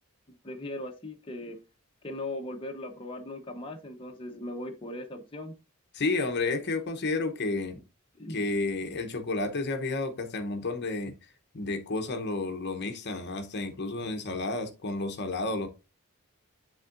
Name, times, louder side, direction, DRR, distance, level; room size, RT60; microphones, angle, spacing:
voice 1, 0.3-1.6 2.0-5.5 8.2-8.4, left 1 dB, 25° left, 0.9 m, -39 dB
voice 2, 5.9-7.8 8.3-11.1 11.5-15.7, left 3 dB, 50° left, 0.8 m, -31 dB
10.5 x 3.7 x 2.5 m
head